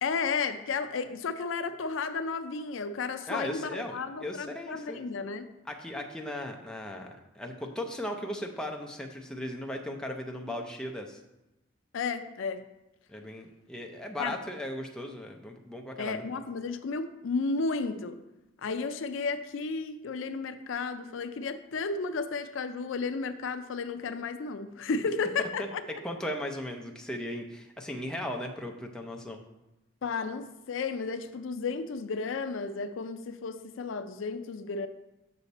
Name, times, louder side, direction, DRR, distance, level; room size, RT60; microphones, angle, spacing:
voice 1, 0.0-5.5 11.9-12.6 14.2-14.4 16.0-18.2 18.6-25.8 30.0-34.9, left 4 dB, 70° left, 10 dB, 0.4 m, -33 dB
voice 2, 3.3-5.1 5.7-11.2 13.1-16.2 25.4-29.4, left 1 dB, 5° left, 1 dB, 0.6 m, -37 dB
6.8 x 5.7 x 4.1 m, 0.95 s
head